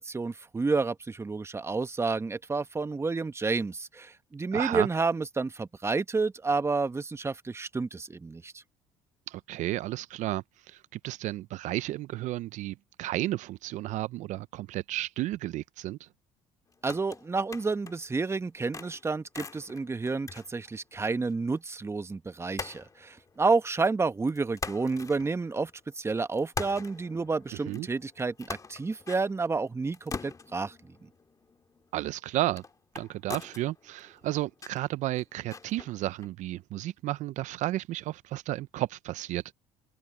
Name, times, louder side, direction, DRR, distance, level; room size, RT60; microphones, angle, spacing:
voice 1, 0.0-8.5 16.8-25.7 26.0-30.7, right 4 dB, 20° right, 1.1 m, -30 dB
voice 2, 4.5-4.9 9.3-16.1 27.7-27.9 31.9-32.6 32.9-39.5, right 15 dB, 65° right, 0.6 m, -33 dB
sound 1, 16.7-18.1 18.5-21.3 21.6-21.7 22.6-23.9 24.3-25.9 26.3-36.3, left 4 dB, 25° left, 2.0 m, -43 dB
supercardioid pair, 80°, 13 cm